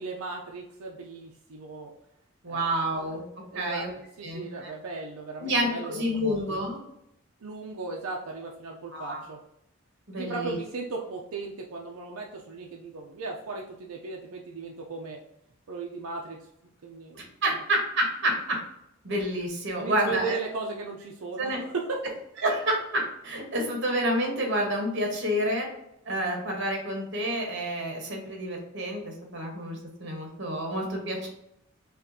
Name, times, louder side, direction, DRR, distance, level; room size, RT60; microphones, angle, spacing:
voice 1, 0.0-1.9 2.5-2.9 3.5-6.6 7.4-9.4 10.1-15.2 15.7-16.4 16.8-17.2 19.8-22.0, right 3 dB, 90° right, 0 dB, 0.5 m, -36 dB
voice 2, 2.4-3.2 3.5-3.9 4.2-4.7 5.4-6.8 8.9-9.2 10.1-10.6 17.1-18.6 19.0-20.3 21.4-21.6 22.4-25.7 26.1-31.3, right 1 dB, 55° right, 2 dB, 1.2 m, -29 dB
5.2 x 2.5 x 2.7 m, 0.81 s
head